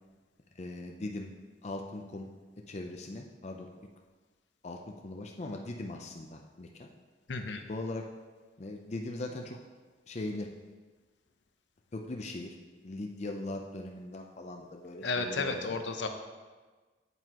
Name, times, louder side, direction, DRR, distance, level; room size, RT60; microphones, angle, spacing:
voice 1, 0.6-1.3 1.6-2.3 2.7-3.7 4.6-4.8 5.0-6.9 7.7-8.0 8.6-9.6 10.1-10.5 11.9-12.5 12.8-15.8, left 2 dB, 35° left, 2 dB, 0.5 m, -39 dB
voice 2, 7.3-7.6 15.0-16.1, left 3 dB, 70° left, 6 dB, 0.7 m, -32 dB
9.0 x 8.1 x 3.0 m, 1.3 s
head